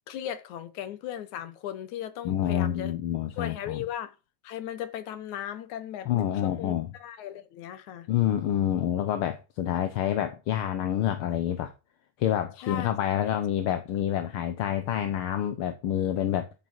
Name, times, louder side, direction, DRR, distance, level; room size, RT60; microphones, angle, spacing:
voice 1, 0.1-2.9 3.4-4.2 4.4-8.1 12.6-13.3, left 10 dB, 80° left, 2.6 m, -37 dB
voice 2, 2.2-3.8 6.0-6.9 8.1-11.7 12.2-16.5, left 10 dB, 65° left, 1.5 m, -27 dB
13.5 x 7.5 x 4.6 m
omnidirectional pair, 3.3 m